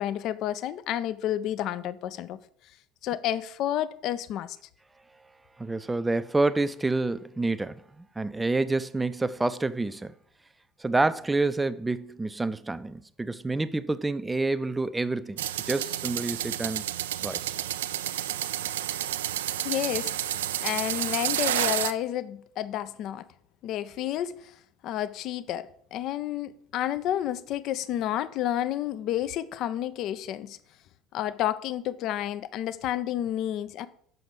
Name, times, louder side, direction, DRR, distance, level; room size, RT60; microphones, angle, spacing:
voice 1, 0.0-2.4 3.0-4.6 19.6-23.3 23.6-24.5 24.8-30.6 31.1-33.9, left 12 dB, 50° left, 0.4 m, -30 dB
voice 2, 5.6-10.1 10.8-16.8 17.2-17.5, right 2 dB, 10° right, 0.5 m, -28 dB
sound 1, 15.4-21.9, right 12 dB, 70° right, 0.3 m, -30 dB
6.9 x 5.9 x 5.3 m
figure-of-eight pair, 65°, 0 cm